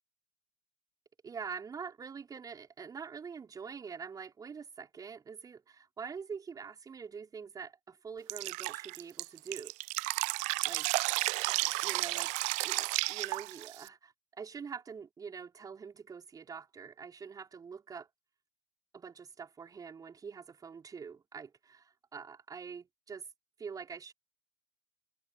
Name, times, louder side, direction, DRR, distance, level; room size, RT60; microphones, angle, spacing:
voice 1, 1.2-9.7 10.7-10.9 11.8-12.3 12.6-18.1 18.9-23.3 23.6-24.1, right 6 dB, 25° right, 5.4 m, -45 dB
Drip, 8.3-13.9, right 27 dB, 50° right, 0.9 m, -32 dB
figure-of-eight pair, 75°, 15 cm